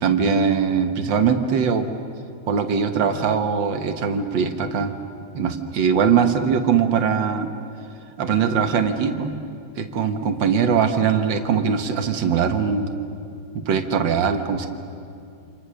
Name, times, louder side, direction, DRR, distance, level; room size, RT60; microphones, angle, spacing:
voice 1, 0.0-1.9 2.5-5.0 5.3-7.5 8.2-9.3 9.8-12.9 13.7-14.7, right 6 dB, 65° right, 6 dB, 2.0 m, -21 dB
28.5 x 26.5 x 6.4 m, 2.5 s
omnidirectional pair, 2.2 m